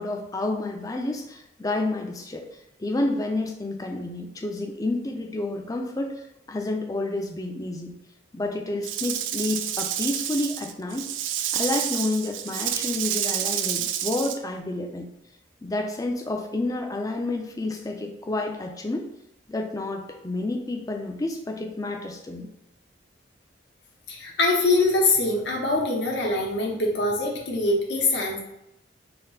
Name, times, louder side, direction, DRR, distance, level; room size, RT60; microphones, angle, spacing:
voice 1, 0.0-2.5 2.8-8.0 8.3-11.0 11.5-15.1 15.6-19.1 19.5-22.5, left 2 dB, 20° left, 3 dB, 0.4 m, -29 dB
Rattle / Rattle (instrument), 8.8-14.4, right 10 dB, 80° right, 0.3 m, -29 dB
voice 2, 24.1-28.4, left 2 dB, 65° left, -1 dB, 0.9 m, -23 dB
4.2 x 2.1 x 3.9 m, 0.84 s
head